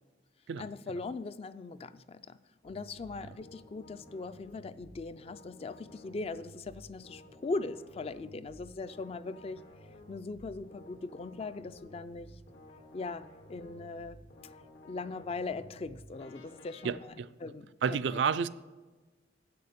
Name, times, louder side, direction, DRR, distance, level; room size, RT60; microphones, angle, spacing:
voice 1, 0.6-2.4 2.6-9.6 10.1-12.3 12.9-14.2 14.8-17.0 17.4-17.7, left 3 dB, 30° left, 13 dB, 0.3 m, -40 dB
sound 1, 2.6-17.1, equal, 85° left, 2.3 m, -54 dB
voice 2, 16.8-17.3 17.8-18.5, right 6 dB, 75° right, 13 dB, 0.4 m, -31 dB
8.2 x 6.8 x 6.6 m, 1.2 s
head